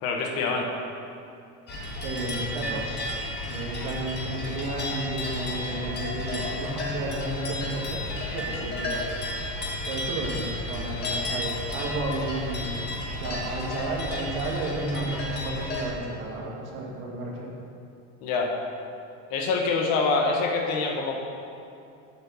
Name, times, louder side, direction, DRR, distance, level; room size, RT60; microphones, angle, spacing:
voice 1, 0.0-0.7 18.2-18.5 19.3-21.1, left 4 dB, 60° left, 1 dB, 1.3 m, -25 dB
sound 1, 1.7-15.8, left 1 dB, 25° left, 1.3 m, -32 dB
voice 2, 2.0-3.0 3.4-8.0 8.3-9.0 9.9-12.9 13.2-17.5, right 2 dB, 65° right, -2 dB, 1.9 m, -32 dB
8.8 x 4.4 x 6.9 m, 2.6 s
cardioid pair, 155°, 38 cm